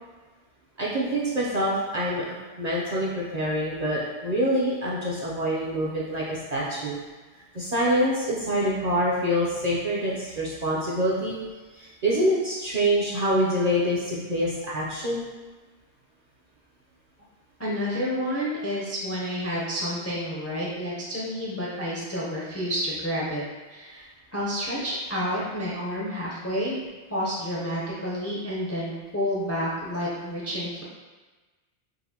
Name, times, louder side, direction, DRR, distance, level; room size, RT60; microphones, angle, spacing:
voice 1, 0.8-7.0 7.5-11.4 11.7-15.3, equal, 50° right, -6 dB, 0.5 m, -26 dB
voice 2, 17.6-23.4 23.7-26.7 27.1-30.8, equal, 25° left, -6 dB, 0.3 m, -30 dB
3.9 x 2.5 x 2.7 m, 1.3 s
omnidirectional pair, 1.1 m